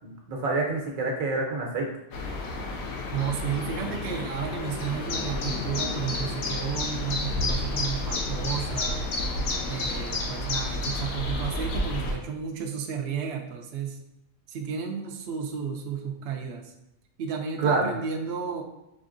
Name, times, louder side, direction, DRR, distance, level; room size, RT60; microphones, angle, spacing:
voice 1, 0.0-1.9 17.6-17.8, right 3 dB, 75° right, 0 dB, 1.3 m, -27 dB
sound 1, 2.1-12.1, left 2 dB, 80° left, 1.2 m, -30 dB
voice 2, 3.1-9.1 9.7-14.0 14.5-16.7 17.2-18.6, right 7 dB, 60° right, 2 dB, 0.7 m, -32 dB
5.3 x 3.4 x 2.5 m, 0.91 s
omnidirectional pair, 1.4 m